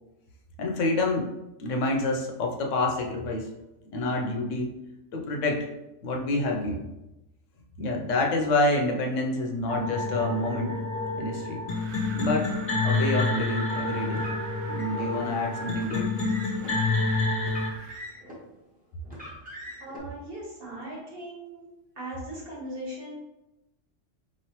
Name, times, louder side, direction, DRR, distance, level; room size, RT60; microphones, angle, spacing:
voice 1, 0.6-1.3 1.6-3.5 3.9-4.7 5.1-5.7 6.0-6.9 7.8-10.8 11.1-11.6 12.1-12.5 12.8-14.2 14.7-16.1, left 2 dB, 80° left, 1 dB, 1.0 m, -27 dB
sound 1, 9.7-17.7, left 3 dB, 45° left, 0.9 m, -28 dB
Wind, 11.7-18.1, right 5 dB, 70° right, 0.8 m, -42 dB
Car, 12.4-13.4 14.1-15.1 15.7-16.7 17.4-18.5 19.0-20.0, equal, 10° right, 1.0 m, -43 dB
voice 2, 19.8-21.7 22.0-23.2, right 1 dB, 50° right, -3 dB, 1.3 m, -39 dB
4.4 x 3.1 x 2.9 m, 0.95 s
omnidirectional pair, 1.3 m